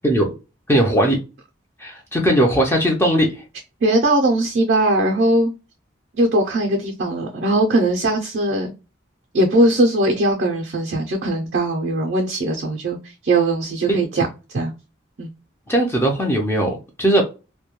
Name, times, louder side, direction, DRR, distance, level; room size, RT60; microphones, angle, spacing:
voice 1, 0.7-1.2 1.8-3.3 13.9-14.0 15.7-17.2, right 1 dB, 10° left, 0.4 m, -18 dB
voice 2, 3.8-5.5 6.2-8.7 9.3-14.3 14.5-14.7 15.2-15.3, right 1 dB, 55° right, 0.4 m, -19 dB
2.2 x 2.1 x 2.8 m
head